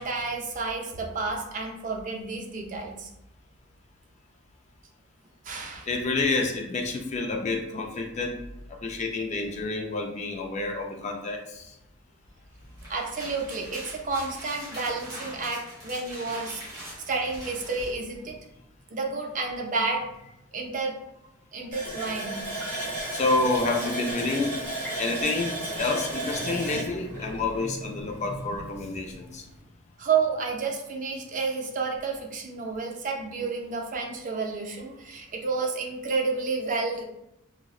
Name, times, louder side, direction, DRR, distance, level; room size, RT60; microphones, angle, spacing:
voice 1, 0.0-3.1 5.4-5.9 12.9-16.7 17.1-18.3 18.9-20.0 20.5-20.9 21.5-22.4 30.0-37.0, right 4 dB, 40° right, 1 dB, 0.4 m, -30 dB
voice 2, 5.9-8.4 8.8-11.7 16.5-16.6 23.1-24.6 25.0-29.4, left 3 dB, 35° left, 2 dB, 0.3 m, -28 dB
sound 1, 12.6-17.9, equal, 20° right, 1.5 m, -43 dB
Water tap faucet, 21.7-28.2 28.5-28.6 29.1-29.3, right 1 dB, 10° left, 1.1 m, -33 dB
3.7 x 2.0 x 2.3 m, 0.84 s
head